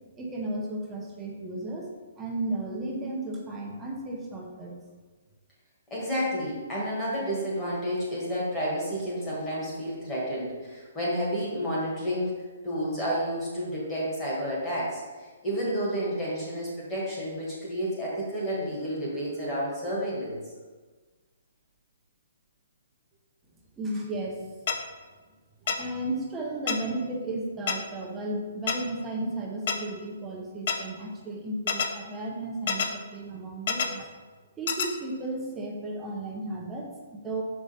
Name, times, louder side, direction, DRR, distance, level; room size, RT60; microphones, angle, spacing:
voice 1, 0.2-1.9 2.2-4.7 23.8-24.4 25.6-34.1 34.6-37.4, right 2 dB, 10° right, -2 dB, 0.7 m, -34 dB
voice 2, 5.9-12.4 12.6-20.4, equal, 10° left, -7 dB, 1.5 m, -30 dB
sound 1, 24.7-24.8 25.7-25.8 26.7-26.8 27.7-27.8 28.7-28.8 29.7-29.8 30.7-30.8 31.7-31.9 32.7-32.9 33.7-33.9 34.7-34.9, left 6 dB, 35° left, 0.5 m, -26 dB
7.0 x 4.9 x 4.1 m, 1.4 s
hypercardioid pair, 175°, 0 cm